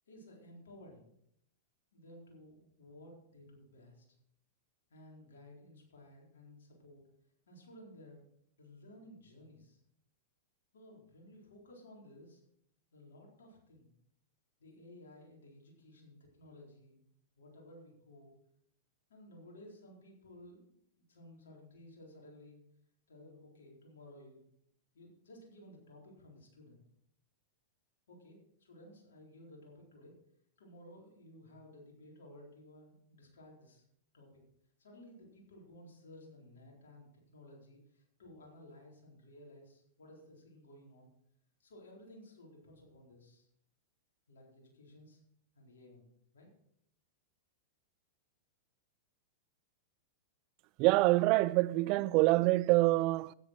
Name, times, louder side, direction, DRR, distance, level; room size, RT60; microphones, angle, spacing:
voice 1, 0.1-1.1 1.9-4.1 4.9-7.1 7.5-8.2 8.6-9.8 10.7-12.4 12.9-13.9 14.6-17.0 17.4-18.3 19.1-22.6 23.1-24.4 24.9-26.8 28.1-30.2 30.6-33.8 34.1-34.4 34.8-41.1 41.6-43.5 44.3-45.2 45.6-46.1 46.3-46.5, left 1 dB, 80° left, 4.0 m, -56 dB
voice 2, 50.8-53.3, right 20 dB, 45° right, 0.4 m, -26 dB
13.0 x 8.9 x 4.5 m
hypercardioid pair, 110°, 0 cm